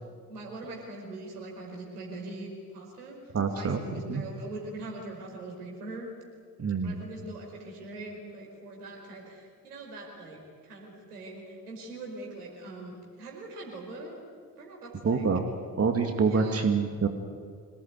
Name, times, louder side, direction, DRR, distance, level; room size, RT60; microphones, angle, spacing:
voice 1, 0.3-3.2 3.6-6.1 6.8-14.2 14.6-15.2 16.2-16.7, right 2 dB, 80° right, -1 dB, 5.1 m, -42 dB
voice 2, 3.3-3.8 4.1-4.2 6.6-7.0 15.0-15.4 15.8-17.1, right 5 dB, 30° right, 5 dB, 2.4 m, -26 dB
26.0 x 18.5 x 9.4 m, 2.1 s
figure-of-eight pair, 50°, 45 cm